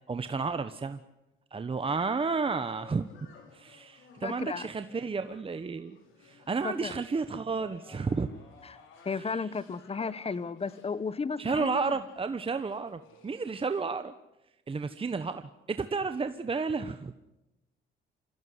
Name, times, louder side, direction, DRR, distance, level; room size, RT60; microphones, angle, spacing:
voice 1, 0.1-1.0 1.5-3.1 3.5-6.0 6.2-8.3 11.4-14.1 14.7-17.1, right 4 dB, 25° right, 10 dB, 1.1 m, -32 dB
sound 1, 2.5-13.8, left 6 dB, 90° left, 5.3 m, -56 dB
voice 2, 4.2-4.7 6.6-6.9 8.6-8.8 9.0-12.0, left 5 dB, 30° left, 17 dB, 1.3 m, -34 dB
26.5 x 16.5 x 9.6 m, 0.95 s
cardioid pair, 90°, 20 cm